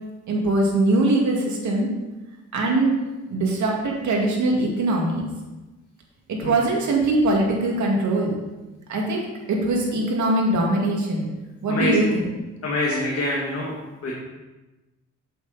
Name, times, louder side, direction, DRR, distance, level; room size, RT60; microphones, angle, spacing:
voice 1, 0.3-1.9 2.5-2.9 3.3-5.2 6.3-8.4 8.9-11.3 11.6-12.3, right 2 dB, 70° right, -1 dB, 2.4 m, -22 dB
voice 2, 12.6-13.7 14.0-14.1, left 2 dB, 50° left, -4 dB, 2.0 m, -25 dB
8.3 x 8.0 x 4.2 m, 1.1 s
cardioid pair, 110°, 30 cm